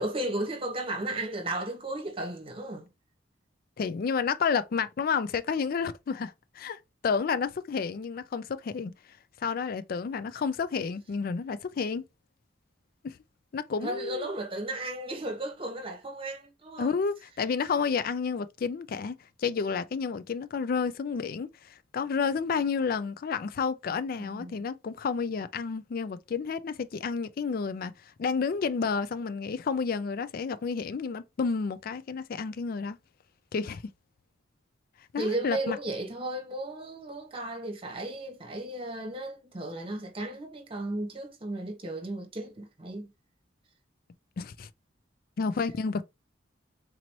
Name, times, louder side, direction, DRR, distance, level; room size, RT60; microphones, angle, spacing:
voice 1, 0.0-2.9 13.8-16.9 24.2-24.5 35.2-43.1, right 1 dB, 30° right, 1.1 m, -34 dB
voice 2, 3.8-8.9 9.4-12.0 13.0-13.2 13.5-14.3 16.8-27.9 28.2-33.0 33.5-33.8 35.1-35.8 44.4-44.7 45.4-46.0, left 5 dB, 50° left, 0.4 m, -30 dB
4.0 x 2.9 x 3.0 m
head